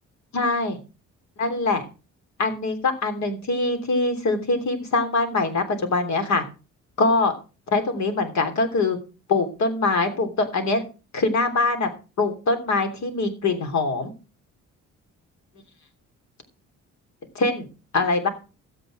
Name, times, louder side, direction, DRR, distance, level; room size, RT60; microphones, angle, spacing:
voice 1, 0.3-0.8 1.4-1.8 2.4-6.4 7.0-7.3 7.7-9.0 9.3-10.8 11.1-11.9 12.2-14.1 17.3-17.7 17.9-18.3, left 3 dB, 65° left, 6 dB, 3.2 m, -23 dB
13.0 x 8.6 x 4.9 m, 0.32 s
cardioid pair, 90°, 30 cm